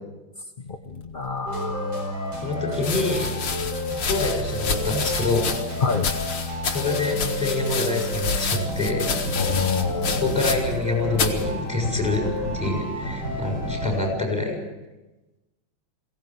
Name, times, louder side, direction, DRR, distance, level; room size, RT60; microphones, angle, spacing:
voice 1, 0.7-2.5 5.8-6.1 9.4-10.3, left 5 dB, 40° left, 4 dB, 0.8 m, -28 dB
sound 1, 1.5-14.1, left 1 dB, 65° right, 5.6 m, -30 dB
voice 2, 2.4-3.4 4.0-5.5 6.7-9.1 10.1-12.3 12.5-14.6, left 3 dB, 5° right, 0 dB, 6.8 m, -26 dB
sound 2, 2.8-10.9 11.1-11.4 12.2-12.6, left 5 dB, 90° left, 2.6 m, -29 dB
22.0 x 17.5 x 7.5 m, 1.1 s
omnidirectional pair, 2.2 m